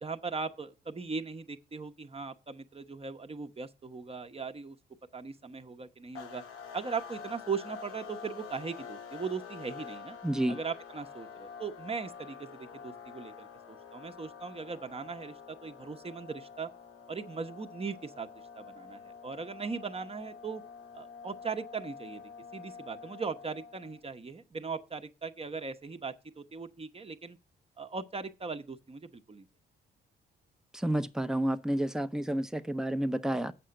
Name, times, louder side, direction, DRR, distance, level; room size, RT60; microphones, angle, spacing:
voice 1, 0.0-4.8 5.1-6.4 6.7-10.2 10.5-16.7 17.1-18.3 18.5-20.6 20.9-27.4 27.8-29.5, right 5 dB, 25° right, 0.9 m, -39 dB
sound 1, 6.1-24.0, left 6 dB, 85° left, 1.1 m, -47 dB
voice 2, 10.2-10.6 30.7-33.5, right 1 dB, 5° right, 0.6 m, -30 dB
7.5 x 5.7 x 6.3 m
supercardioid pair, 60°, 21 cm